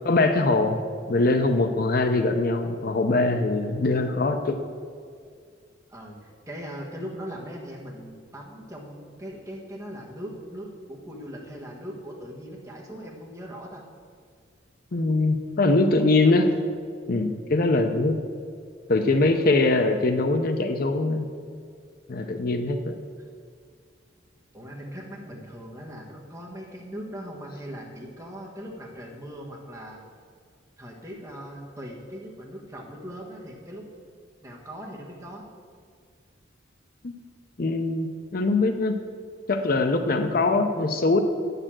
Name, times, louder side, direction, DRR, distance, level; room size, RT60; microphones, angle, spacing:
voice 1, 0.0-0.8 1.1-4.6 14.9-16.5 17.1-18.2 18.9-21.3 22.1-23.0 37.0-37.1 37.6-39.0 39.5-41.2, left 2 dB, 50° left, 7 dB, 0.6 m, -22 dB
voice 2, 5.9-13.8 15.8-16.5 24.5-30.0 30.8-33.9 34.4-35.4 40.3-40.5, equal, 15° right, -1 dB, 1.5 m, -40 dB
8.8 x 6.7 x 7.5 m, 2.1 s
head